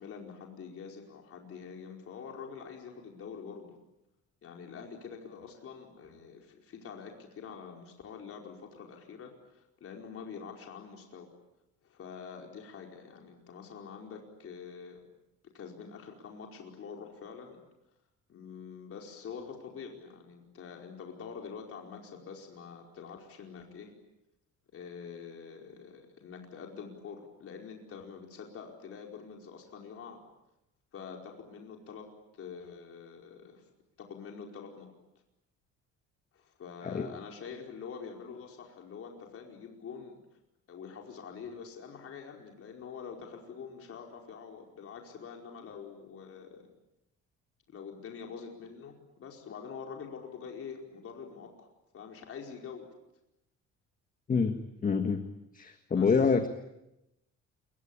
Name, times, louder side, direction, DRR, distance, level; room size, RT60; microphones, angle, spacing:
voice 1, 0.0-3.8 4.4-11.3 11.8-15.0 15.5-17.6 18.3-23.9 24.7-30.2 30.9-32.1 32.3-33.6 34.0-34.9 36.3-40.2 40.7-46.6 47.7-51.7 51.9-52.9 55.9-56.2, left 6 dB, 50° left, 1 dB, 4.9 m, -45 dB
voice 2, 54.8-55.2 55.5-56.5, left 5 dB, 30° left, 7 dB, 1.7 m, -26 dB
28.0 x 23.5 x 8.8 m, 0.89 s
cardioid pair, 150°, 29 cm